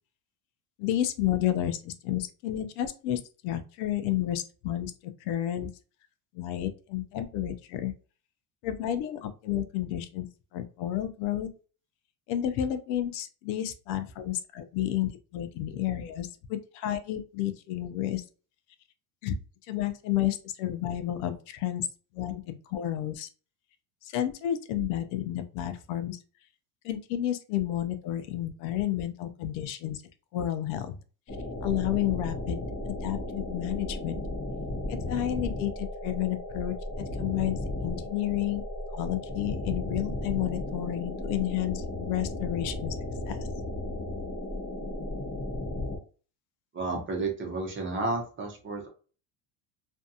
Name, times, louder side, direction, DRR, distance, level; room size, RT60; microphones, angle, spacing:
voice 1, 0.8-5.7 6.3-7.9 8.6-10.3 10.5-11.5 12.3-18.2 19.2-19.3 19.7-21.9 22.1-23.3 24.0-26.2 26.8-30.0 30.3-31.0 31.6-34.2 34.9-36.7 37.2-38.6 38.9-42.9 43.3-43.4, left 12 dB, 75° left, 9 dB, 0.6 m, -31 dB
sound 1, 31.3-46.0, left 1 dB, 30° left, 0.9 m, -35 dB
voice 2, 46.7-48.9, right 3 dB, 25° right, 1 dB, 0.8 m, -31 dB
2.6 x 2.2 x 2.6 m, 0.37 s
cardioid pair, 130°, 47 cm